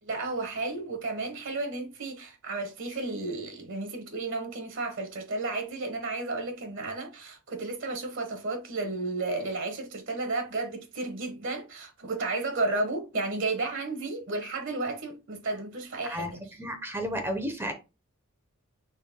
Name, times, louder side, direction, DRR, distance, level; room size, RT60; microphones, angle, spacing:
voice 1, 0.0-16.5, right 3 dB, 60° right, 1.1 m, -33 dB
voice 2, 16.6-17.7, equal, 10° right, 0.6 m, -32 dB
4.6 x 3.2 x 3.5 m
head